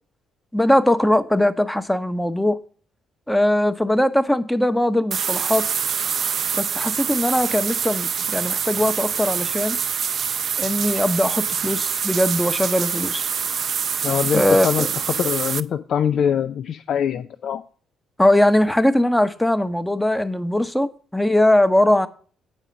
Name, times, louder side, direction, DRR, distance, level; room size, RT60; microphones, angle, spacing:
voice 1, 0.5-2.6 3.3-5.6 6.5-9.8 10.6-13.3 14.3-14.9 18.2-22.1, left 1 dB, 10° left, 11 dB, 0.9 m, -20 dB
sound 1, 5.1-15.6, right 7 dB, 55° right, 0.5 m, -25 dB
voice 2, 14.0-17.6, left 8 dB, 60° left, 12 dB, 0.4 m, -23 dB
9.0 x 4.9 x 7.0 m, 0.42 s
hypercardioid pair, 50°, 0 cm